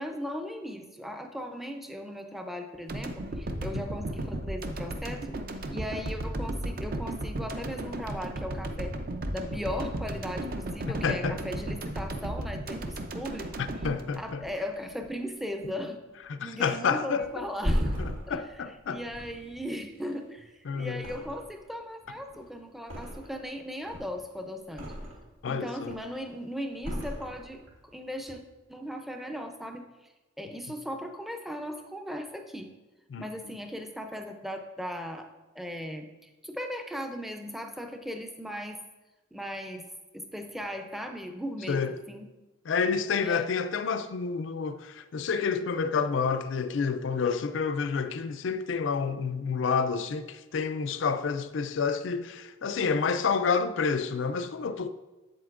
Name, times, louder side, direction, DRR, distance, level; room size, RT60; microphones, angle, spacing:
voice 1, 0.0-5.4 5.7-8.9 9.3-13.5 14.2-16.0 16.4-17.9 18.3-18.5 18.9-24.9 25.5-28.4 28.7-29.9 30.4-32.7 33.2-35.3 35.5-36.1 36.4-38.8 39.3-39.8 40.1-42.3 43.1-43.5, equal, ahead, 0.5 m, -37 dB
sound 1, 2.9-15.1, right 1 dB, 45° right, 0.6 m, -35 dB
voice 2, 11.0-11.4 13.6-14.4 16.3-17.5 18.0-19.0 20.7-21.0 25.4-25.9 33.1-33.6 41.7-42.0 42.7-54.9, left 5 dB, 70° left, 0.4 m, -29 dB
Thump thud, 17.2-20.5 20.9-21.7 22.0-23.5 23.8-25.3 25.7-26.2 26.8-27.8 28.1-28.3, equal, 90° right, 1.8 m, -35 dB
8.0 x 7.7 x 2.5 m
head